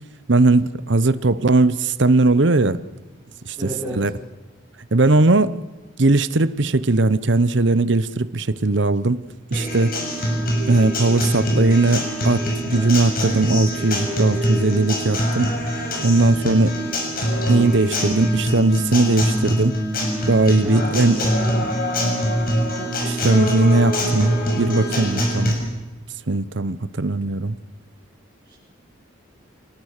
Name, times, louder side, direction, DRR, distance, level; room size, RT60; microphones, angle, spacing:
voice 1, 0.3-2.8 3.5-4.1 4.9-5.6 6.0-9.2 9.5-10.0 10.7-15.5 16.0-16.8 17.5-19.8 20.3-21.2 23.0-25.5 26.3-27.6, right 2 dB, 60° right, 0.9 m, -19 dB
voice 2, 3.6-4.1 20.6-21.6 28.4-28.5, equal, 10° right, 5.3 m, -31 dB
Acoustic guitar, 9.5-25.5, equal, 45° left, 6.5 m, -23 dB
27.5 x 19.5 x 6.7 m
head